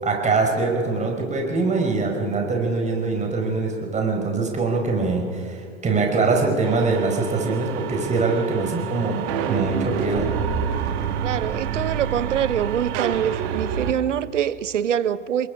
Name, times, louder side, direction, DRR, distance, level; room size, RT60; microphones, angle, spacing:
voice 1, 0.0-10.3, right 3 dB, 20° right, 5.0 m, -23 dB
sound 1, 6.6-13.9, right 8 dB, 50° right, 1.9 m, -28 dB
voice 2, 11.2-15.5, right 9 dB, 70° right, 0.9 m, -24 dB
28.5 x 22.0 x 5.0 m
figure-of-eight pair, 90°, 37 cm